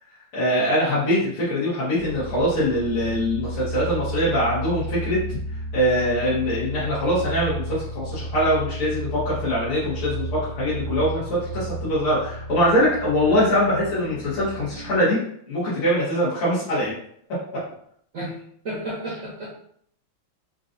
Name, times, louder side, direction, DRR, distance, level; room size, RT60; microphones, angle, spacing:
voice 1, 0.3-15.2 15.5-16.9, equal, 80° left, -11 dB, 2.3 m, -23 dB
sound 1, 1.9-15.0, right 1 dB, 75° right, 1.4 m, -33 dB
voice 2, 18.1-19.5, right 1 dB, 50° right, -6 dB, 1.0 m, -32 dB
5.0 x 2.6 x 2.6 m, 0.66 s
omnidirectional pair, 2.4 m